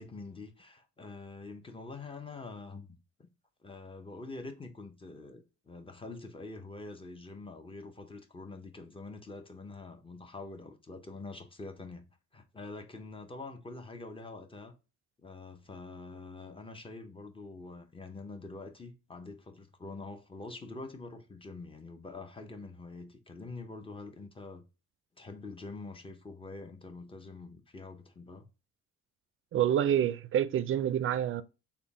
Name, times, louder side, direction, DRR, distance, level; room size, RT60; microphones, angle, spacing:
voice 1, 0.0-3.3 3.6-14.7 15.2-24.6 25.2-28.5, left 3 dB, 20° left, 0.7 m, -45 dB
voice 2, 29.5-31.4, right 10 dB, 45° right, 0.4 m, -27 dB
3.7 x 2.2 x 3.4 m
cardioid pair, 90°, 30 cm